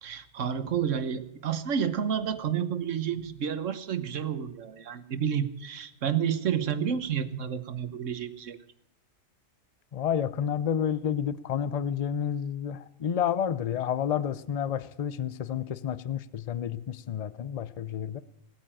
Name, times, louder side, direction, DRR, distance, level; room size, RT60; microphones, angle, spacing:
voice 1, 0.0-8.6, right 8 dB, 70° right, 1.3 m, -30 dB
voice 2, 9.9-18.2, left 8 dB, 45° left, 0.5 m, -30 dB
18.0 x 8.9 x 8.9 m
omnidirectional pair, 1.3 m